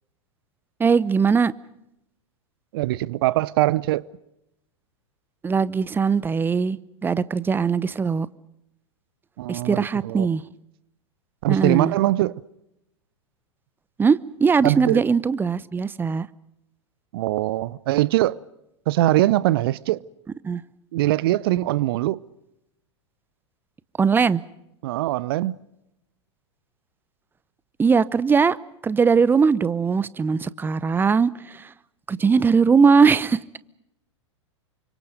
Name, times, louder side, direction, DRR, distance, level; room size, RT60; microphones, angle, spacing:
voice 1, 0.8-1.5 5.4-6.8 7.0-8.3 9.5-10.4 11.5-11.9 14.0-16.3 20.4-20.6 24.0-24.4 27.8-28.6 28.8-31.7 32.1-33.4, right 5 dB, 15° right, 0.8 m, -20 dB
voice 2, 2.7-4.1 9.4-10.3 11.4-12.4 14.6-15.0 17.1-18.4 18.9-20.0 20.9-22.2 24.8-25.6, right 16 dB, 50° right, 0.8 m, -22 dB
29.0 x 25.5 x 5.2 m
figure-of-eight pair, 95°, 16 cm